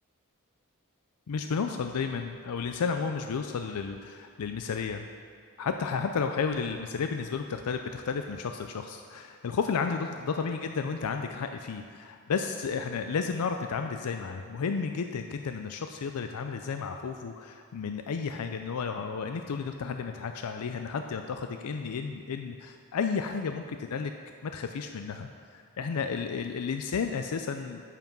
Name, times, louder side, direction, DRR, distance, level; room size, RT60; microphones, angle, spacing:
voice 1, 1.3-5.1 5.6-24.1 24.4-27.8, left 5 dB, 90° left, 6 dB, 0.4 m, -32 dB
9.0 x 5.9 x 5.4 m, 2.1 s
head